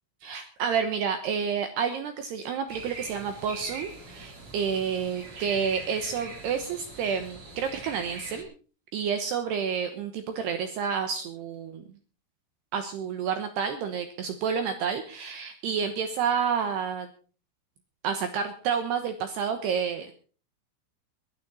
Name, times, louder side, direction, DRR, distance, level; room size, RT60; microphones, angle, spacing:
voice 1, 0.2-8.5 8.9-11.8 12.7-17.1 18.0-20.1, right 7 dB, 75° right, 8 dB, 2.6 m, -29 dB
sound 1, 2.7-8.4, right 3 dB, 35° right, 4.2 m, -43 dB
22.0 x 11.5 x 4.1 m, 0.39 s
omnidirectional pair, 6.0 m